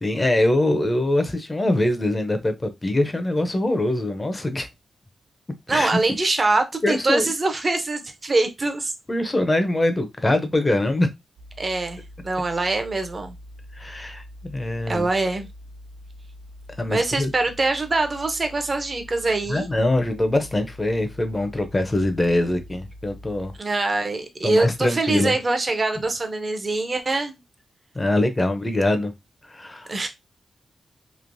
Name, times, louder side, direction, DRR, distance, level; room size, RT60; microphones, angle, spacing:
voice 1, 0.0-4.7 5.7-5.9 6.8-7.3 9.1-11.1 13.7-15.1 16.8-17.3 19.5-23.5 24.4-25.4 27.9-29.1 29.5-29.9, left 1 dB, 20° left, 0.6 m, -23 dB
voice 2, 5.7-8.9 11.6-13.4 14.9-15.5 16.9-19.7 23.6-27.4 29.9-30.1, right 3 dB, 35° right, 0.6 m, -24 dB
sound 1, 11.4-23.6, left 1 dB, 70° right, 0.7 m, -44 dB
3.1 x 2.9 x 2.6 m
wide cardioid pair, 105°, 0 cm